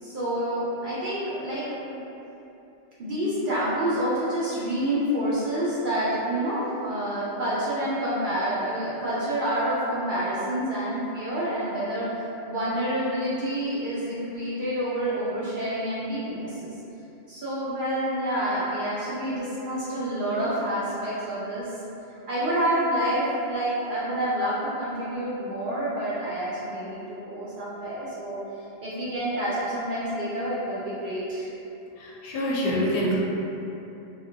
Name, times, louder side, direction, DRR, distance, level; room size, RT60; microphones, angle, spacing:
voice 1, 0.0-1.6 3.0-12.1 12.5-16.8 17.3-21.7 22.1-28.4 28.8-31.5, right 1 dB, 65° right, -9 dB, 0.5 m, -28 dB
voice 2, 32.0-33.2, equal, 60° left, -5 dB, 0.7 m, -26 dB
2.8 x 2.4 x 2.6 m, 2.9 s
omnidirectional pair, 1.3 m